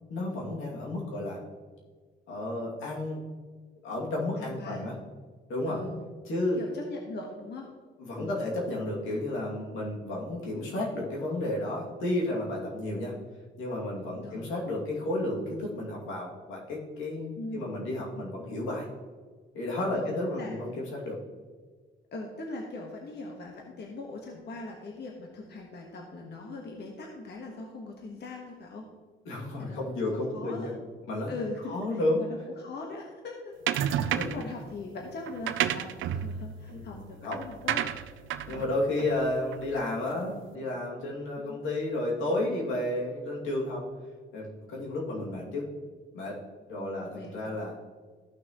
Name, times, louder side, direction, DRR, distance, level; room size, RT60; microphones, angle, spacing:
voice 1, 0.1-1.4 2.3-3.2 3.8-4.9 5.5-5.8 6.3-6.6 8.0-13.1 13.6-18.9 19.5-21.2 29.3-30.8 31.1-31.3 31.7-32.2 33.8-34.3 36.7-37.4 38.5-43.8 44.3-45.7 46.1-46.4 46.7-47.7, left 1 dB, 90° left, -3 dB, 2.5 m, -32 dB
voice 2, 4.4-4.9 5.7-6.0 6.6-7.7 8.1-8.4 14.2-14.5 17.4-17.7 19.9-20.6 22.1-28.9 29.6-30.0 30.3-30.7 31.3-37.8 38.5-38.7 41.4-41.6 46.8-47.5, left 3 dB, 55° left, 0 dB, 1.4 m, -41 dB
sound 1, 33.7-34.5 35.3-40.0, right 10 dB, 75° right, 0.5 m, -32 dB
14.0 x 6.0 x 3.1 m, 1.5 s
cardioid pair, 90°, 20 cm